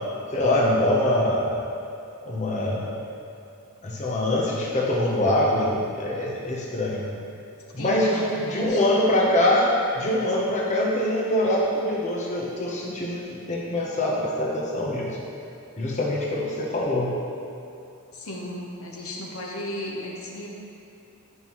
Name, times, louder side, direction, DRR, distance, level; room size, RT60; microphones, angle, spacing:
voice 1, 0.3-1.5 2.3-3.0 3.8-7.0 7.7-9.7 10.0-15.2 15.8-17.1, left 1 dB, 35° left, -4 dB, 0.8 m, -24 dB
voice 2, 7.8-8.8 18.1-20.5, equal, 70° left, -2 dB, 1.0 m, -34 dB
9.3 x 5.5 x 3.0 m, 2.7 s
head